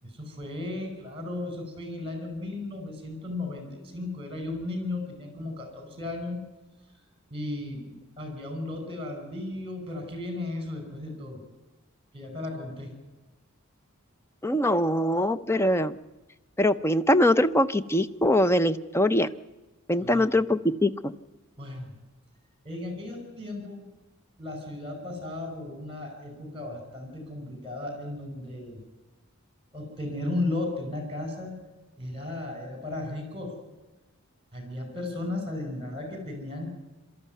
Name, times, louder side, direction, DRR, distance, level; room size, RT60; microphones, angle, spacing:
voice 1, 0.0-6.4 6.9-7.0 7.3-11.4 12.1-12.9 20.0-20.2 21.6-21.9 22.6-23.9 24.4-28.8 29.7-31.6 32.0-33.6 34.5-36.7, left 2 dB, 25° right, 6 dB, 5.3 m, -35 dB
voice 2, 14.4-16.0 16.6-19.3 19.9-21.1, left 1 dB, 10° left, 13 dB, 0.6 m, -23 dB
23.5 x 13.0 x 9.3 m, 1.1 s
head